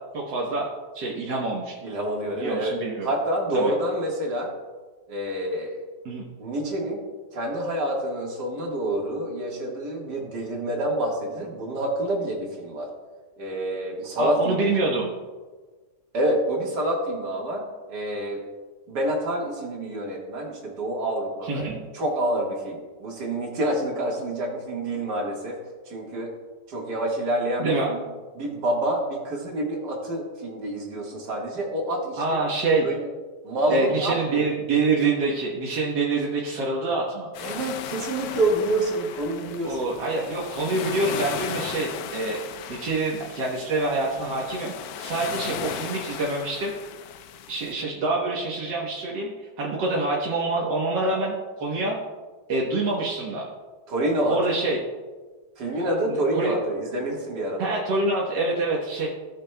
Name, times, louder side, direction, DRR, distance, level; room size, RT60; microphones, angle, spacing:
voice 1, 0.1-0.7 0.9-1.7 2.4-3.1 3.5-3.7 6.1-6.2 14.2-15.1 21.4-21.8 27.6-27.9 32.2-32.9 33.7-37.3 39.6-42.4 42.7-46.7 47.5-52.0 52.5-53.5 54.3-54.8 55.8-56.5 57.6-59.1, right 3 dB, 90° right, -3 dB, 1.8 m, -26 dB
voice 2, 1.8-2.8 3.0-4.5 5.1-5.8 6.4-7.0 7.3-12.9 13.4-14.7 16.1-17.6 17.9-18.4 18.9-21.7 21.9-25.5 25.9-26.3 26.7-28.0 28.4-32.4 32.8-33.1 33.4-34.5 37.4-39.8 53.9-54.4 55.6-57.7, right 1 dB, 75° right, -1 dB, 2.2 m, -27 dB
sound 1, 37.3-47.7, left 8 dB, 70° left, 1.0 m, -36 dB
17.0 x 6.3 x 2.2 m, 1.4 s
omnidirectional pair, 1.8 m